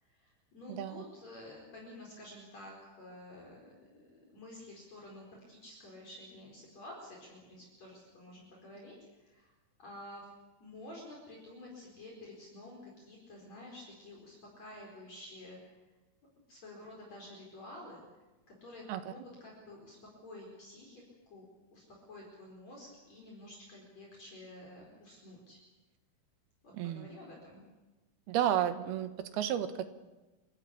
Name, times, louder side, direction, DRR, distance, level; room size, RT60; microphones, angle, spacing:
voice 1, 0.0-9.5 9.8-10.3 10.6-15.7 16.5-18.0 18.6-20.0 20.2-21.4 21.7-25.6 26.6-27.6, left 1 dB, 45° left, -2 dB, 5.8 m, -50 dB
voice 2, 0.7-1.0 18.9-19.1 26.7-27.1 28.3-29.9, right 10 dB, 90° right, 9 dB, 3.2 m, -32 dB
29.5 x 14.0 x 8.5 m, 1.1 s
omnidirectional pair, 4.4 m